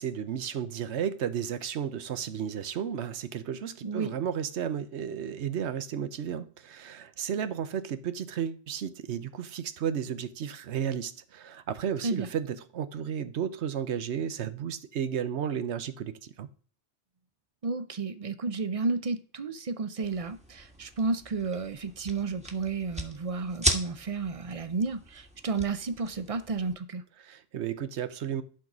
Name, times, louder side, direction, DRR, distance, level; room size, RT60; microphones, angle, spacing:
voice 1, 0.0-16.5 27.2-28.4, right 8 dB, 70° right, 1.0 m, -33 dB
voice 2, 3.8-4.1 12.0-12.3 17.6-27.0, right 4 dB, 40° right, 0.6 m, -32 dB
sound 1, 20.0-26.7, equal, 5° right, 1.2 m, -37 dB
11.5 x 4.0 x 6.0 m
omnidirectional pair, 1.2 m